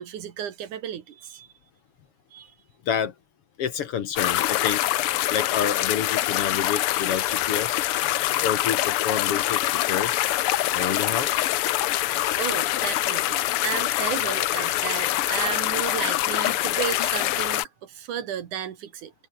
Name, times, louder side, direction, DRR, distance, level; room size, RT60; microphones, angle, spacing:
voice 1, 0.0-1.5 2.3-2.5 10.1-10.3 10.5-10.6 12.0-19.1, right 9 dB, 85° right, 3.4 m, -33 dB
voice 2, 3.6-4.8 5.3-7.8 8.4-10.2 10.7-11.4, left 8 dB, 55° left, 2.1 m, -28 dB
sound 1, 4.1-17.7, left 14 dB, 75° left, 1.2 m, -24 dB
omnidirectional pair, 3.4 m